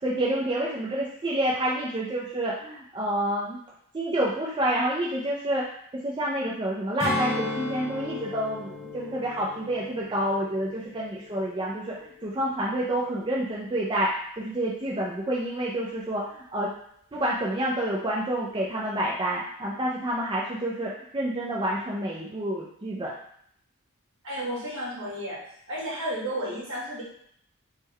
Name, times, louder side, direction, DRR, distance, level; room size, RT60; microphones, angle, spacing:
voice 1, 0.0-3.6 3.9-5.6 6.0-11.9 12.2-14.1 14.4-16.7 17.1-23.1, right 1 dB, 20° right, -4 dB, 0.4 m, -28 dB
Strum, 7.0-11.7 12.1-12.3, left 2 dB, 15° left, 0.9 m, -35 dB
voice 2, 24.2-25.4 25.7-27.0, equal, 60° right, -7 dB, 1.7 m, -32 dB
3.6 x 3.2 x 3.2 m, 0.67 s
head